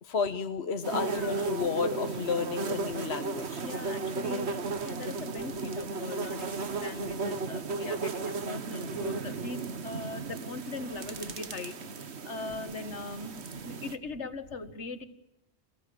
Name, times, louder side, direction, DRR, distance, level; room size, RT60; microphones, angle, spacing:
voice 1, 0.0-3.6, left 5 dB, 70° left, 8 dB, 1.3 m, -32 dB
sound 1, 0.8-14.0, right 4 dB, 70° right, 1.5 m, -35 dB
voice 2, 1.0-1.5 3.6-15.1, left 3 dB, 90° left, 10 dB, 1.9 m, -40 dB
29.0 x 16.5 x 8.7 m, 0.92 s
omnidirectional pair, 1.1 m